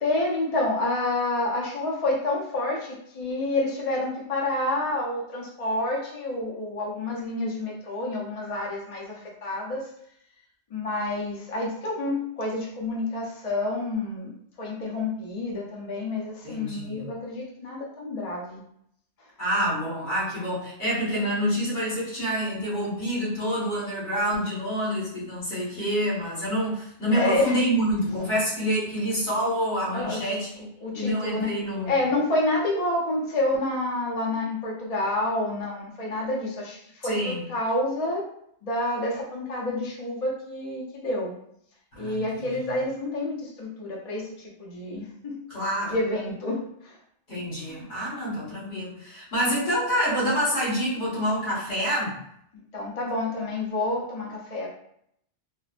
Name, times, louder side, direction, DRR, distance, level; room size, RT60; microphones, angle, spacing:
voice 1, 0.0-9.8 10.7-14.3 14.6-18.6 27.1-27.6 29.9-30.2 30.8-31.5 31.9-38.2 38.6-41.3 42.0-44.3 44.6-45.4 45.9-46.9 47.6-47.9 52.7-54.7, left 2 dB, 45° left, -3 dB, 0.5 m, -28 dB
voice 2, 16.4-17.1 19.4-30.6 30.9-31.9 37.0-37.4 41.9-42.7 45.5-46.0 47.3-52.2, equal, 65° left, -7 dB, 1.7 m, -27 dB
3.1 x 2.0 x 2.4 m, 0.71 s
omnidirectional pair, 1.2 m